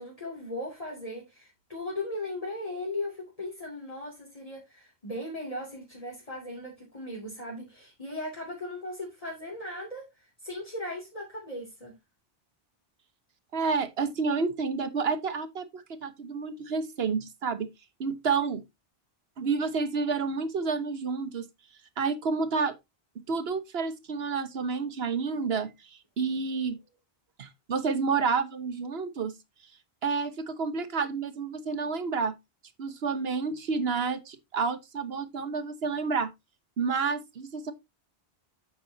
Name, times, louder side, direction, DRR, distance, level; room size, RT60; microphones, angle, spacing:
voice 1, 0.0-11.9, left 1 dB, 35° left, 2.7 m, -38 dB
voice 2, 13.5-17.7 18.0-18.6 19.4-21.5 22.0-22.7 23.2-25.7 26.2-26.8 27.4-29.3 30.0-32.3 32.8-36.3 36.8-37.7, right 5 dB, 70° right, 1.3 m, -29 dB
8.7 x 8.2 x 2.7 m
omnidirectional pair, 1.1 m